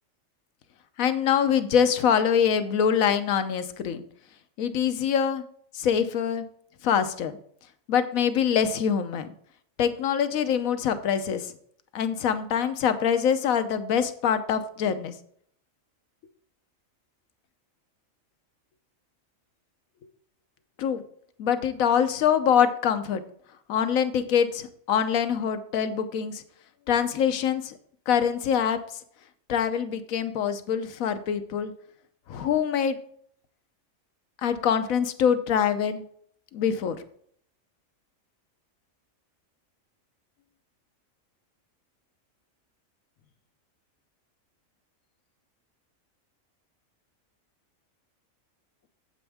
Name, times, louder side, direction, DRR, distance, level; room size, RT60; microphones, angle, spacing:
voice 1, 1.0-4.0 4.6-5.4 5.7-6.5 6.8-7.3 7.9-9.3 9.8-11.5 11.9-15.1 20.8-21.0 21.4-23.2 23.7-26.4 26.9-27.7 28.1-28.8 29.5-31.7 32.3-33.0 34.4-36.0 36.5-37.0, left 8 dB, 85° left, 10 dB, 1.2 m, -24 dB
8.9 x 8.0 x 3.5 m, 0.63 s
omnidirectional pair, 1.4 m